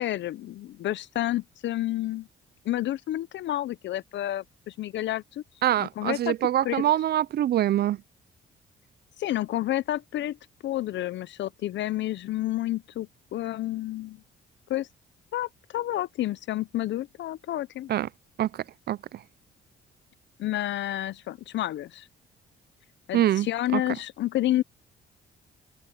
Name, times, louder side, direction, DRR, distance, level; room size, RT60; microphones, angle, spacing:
voice 1, 0.0-2.3 2.6-5.4 5.8-6.3 6.6-6.9 9.2-10.4 10.6-14.2 14.7-14.9 15.3-17.9 20.4-22.1 23.1-24.6, left 14 dB, 65° left, 0.5 m, -30 dB
voice 2, 5.6-8.0 17.9-18.1 18.4-19.2 23.1-23.5 23.7-23.8, right 12 dB, 55° right, 0.5 m, -24 dB
cardioid pair, 90°, 20 cm